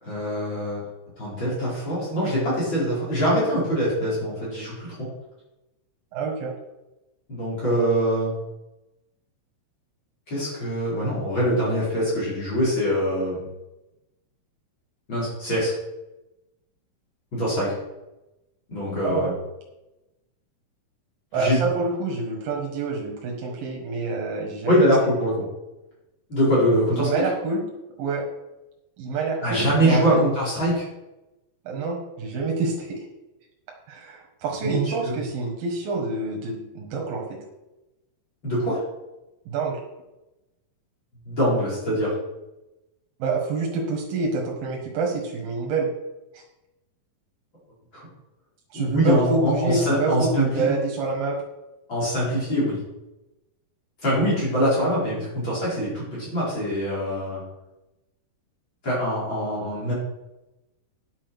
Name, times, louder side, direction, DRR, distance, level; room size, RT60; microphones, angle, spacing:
voice 1, 0.0-0.9 1.2-5.1 7.3-8.3 10.3-13.5 15.1-15.7 17.3-17.7 18.7-19.3 21.3-21.6 24.6-25.4 26.3-27.2 29.4-30.9 34.6-35.1 38.4-38.8 41.2-42.1 47.9-48.0 48.7-50.7 51.9-52.8 54.0-57.4 58.8-59.9, equal, 35° left, -7 dB, 5.0 m, -23 dB
voice 2, 6.1-6.5 19.0-19.3 21.3-24.8 27.0-27.6 28.0-28.3 29.0-30.2 31.7-33.0 33.9-37.4 39.5-39.8 43.2-45.9 46.3-46.4 48.7-51.4, right 3 dB, 90° right, 0 dB, 3.3 m, -27 dB
10.0 x 7.3 x 6.2 m, 0.98 s
omnidirectional pair, 4.0 m